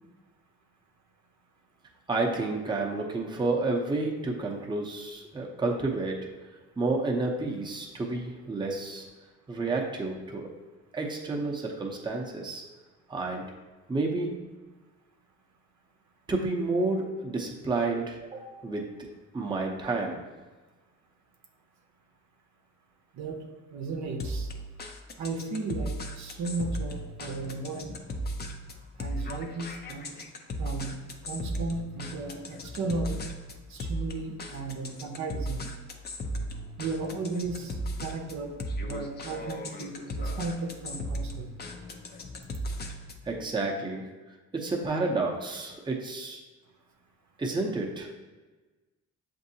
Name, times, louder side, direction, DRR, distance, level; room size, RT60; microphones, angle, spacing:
voice 1, 2.1-6.3 6.8-9.1 9.5-10.5 10.9-12.6 13.1-13.5 13.9-14.4 16.3-18.9 19.3-20.2 43.3-44.1 44.5-46.4 47.4-48.1, right 3 dB, 15° right, -1 dB, 0.7 m, -30 dB
voice 2, 23.7-24.5 25.2-28.0 29.0-30.1 30.6-31.0 31.2-33.2 33.7-35.7 36.8-38.5 38.8-41.5, right 3 dB, 65° right, 2 dB, 0.7 m, -35 dB
sound 1, 24.2-43.3, equal, 35° left, 0.5 m, -36 dB
7.2 x 2.7 x 2.7 m, 1.2 s
cardioid pair, 90°, 30 cm